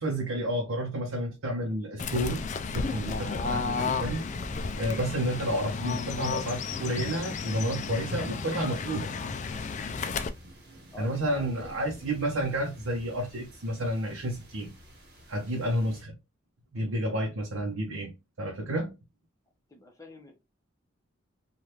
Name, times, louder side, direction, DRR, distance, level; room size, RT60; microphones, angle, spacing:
voice 1, 0.0-2.4 2.7-4.2 4.8-9.1 11.0-14.7 15.3-16.1 16.7-18.1 18.4-18.9, right 1 dB, 85° right, 0.7 m, -30 dB
Fowl / Bird, 2.0-10.3, left 4 dB, 40° left, 0.3 m, -33 dB
sound 1, 3.7-16.0, equal, 55° right, 1.1 m, -50 dB
voice 2, 10.9-12.4 19.7-20.4, left 2 dB, 15° left, 0.7 m, -48 dB
3.3 x 2.4 x 2.8 m
head